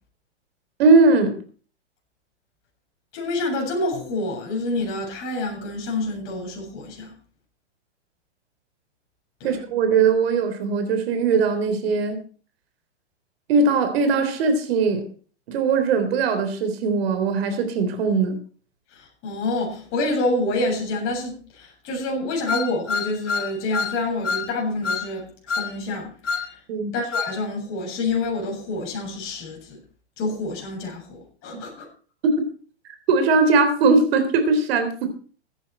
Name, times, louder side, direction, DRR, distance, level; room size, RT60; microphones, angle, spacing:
voice 1, 0.8-1.4 9.4-12.2 13.5-15.1 15.5-18.4 26.7-26.9 33.1-35.1, right 4 dB, 55° right, 7 dB, 3.7 m, -20 dB
voice 2, 3.1-7.1 9.4-9.6 18.9-25.3 25.5-26.6 26.9-29.8 30.2-31.9, left 2 dB, 35° left, 0 dB, 7.9 m, -27 dB
sound 1, 22.5-24.0 24.2-24.5 24.8-25.1 25.5-25.7 26.2-26.5 27.1-27.3, left 5 dB, 85° left, 1.8 m, -26 dB
15.5 x 10.0 x 4.4 m, 0.41 s
hypercardioid pair, 125°, 35 cm